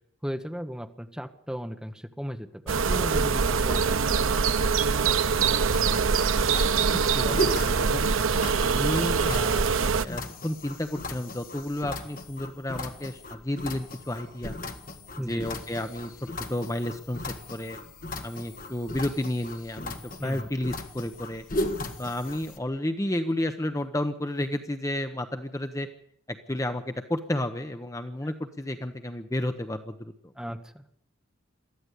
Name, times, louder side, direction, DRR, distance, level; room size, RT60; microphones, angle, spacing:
voice 1, 0.2-4.2 15.2-15.5 20.2-20.5 28.2-28.3 30.3-30.8, equal, 5° right, 6 dB, 1.1 m, -36 dB
sound 1, 2.7-10.0, right 5 dB, 85° right, 0.7 m, -24 dB
sound 2, 5.7-22.6, left 2 dB, 40° left, 1.7 m, -37 dB
voice 2, 6.8-8.1 8.6-14.6 15.3-17.2 17.5-17.8 18.2-19.9 20.2-21.4 22.0-25.9 26.5-30.1, left 1 dB, 15° left, 8 dB, 0.9 m, -31 dB
22.5 x 14.5 x 8.4 m, 0.72 s
head